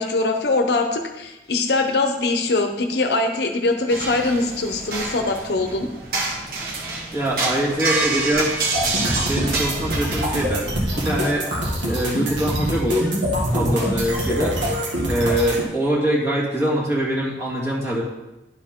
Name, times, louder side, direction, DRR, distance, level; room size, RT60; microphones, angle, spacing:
voice 1, 0.0-5.9, left 2 dB, 65° left, 5 dB, 0.7 m, -22 dB
sound 1, 3.9-10.3, right 3 dB, 55° right, 1.2 m, -27 dB
voice 2, 7.1-11.5 11.8-13.1 13.5-14.6 15.1-18.0, right 1 dB, 15° right, -7 dB, 2.1 m, -24 dB
sound 2, 8.7-15.6, equal, 80° right, 1.7 m, -24 dB
11.0 x 4.7 x 3.6 m, 1.0 s
head